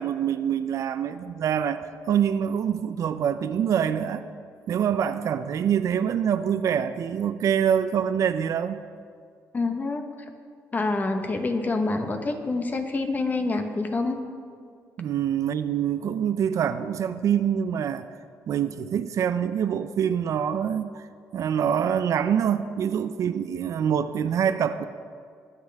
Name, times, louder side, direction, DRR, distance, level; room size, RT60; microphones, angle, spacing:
voice 1, 0.0-4.3 4.7-8.8 15.0-18.0 18.5-21.0 21.3-24.8, right 8 dB, 60° right, 12 dB, 0.5 m, -25 dB
voice 2, 9.5-10.0 10.7-14.2, left 3 dB, 25° left, 6 dB, 1.1 m, -26 dB
19.5 x 8.6 x 3.5 m, 2.1 s
cardioid pair, 115°, 6 cm